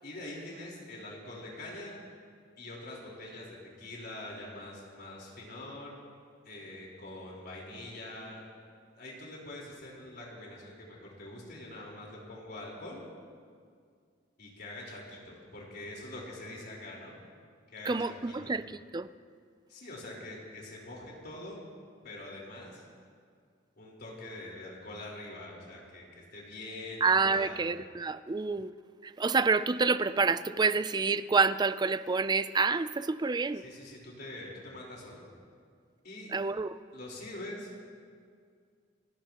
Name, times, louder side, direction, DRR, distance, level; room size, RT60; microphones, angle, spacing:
voice 1, 0.0-2.0 2.6-6.0 6.4-8.5 9.0-13.0 14.4-17.2 17.7-18.5 19.7-21.6 22.0-22.8 23.8-27.7 33.5-35.2 36.0-36.3 36.9-37.7, left 1 dB, 55° left, -3 dB, 4.2 m, -44 dB
voice 2, 17.9-18.6 18.9-19.1 27.0-28.7 29.2-33.6 36.3-36.7, right 4 dB, 20° right, 14 dB, 0.4 m, -28 dB
29.5 x 16.0 x 3.0 m, 2.1 s
head